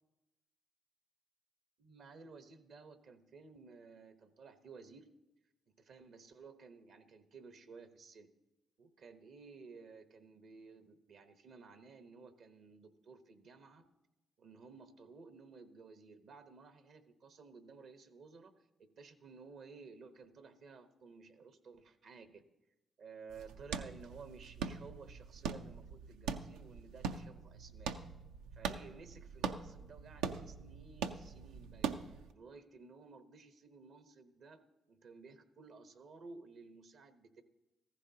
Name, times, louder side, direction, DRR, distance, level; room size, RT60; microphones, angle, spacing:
voice 1, 1.8-5.1 5.8-8.3 8.8-13.9 14.4-18.7 19.0-22.4 23.0-27.9 28.5-31.9 32.3-37.4, right 4 dB, 70° right, 9 dB, 1.0 m, -55 dB
sound 1, 23.3-32.3, right 6 dB, 90° right, 0.4 m, -42 dB
14.5 x 14.5 x 2.8 m, 0.99 s
supercardioid pair, 50°, 0 cm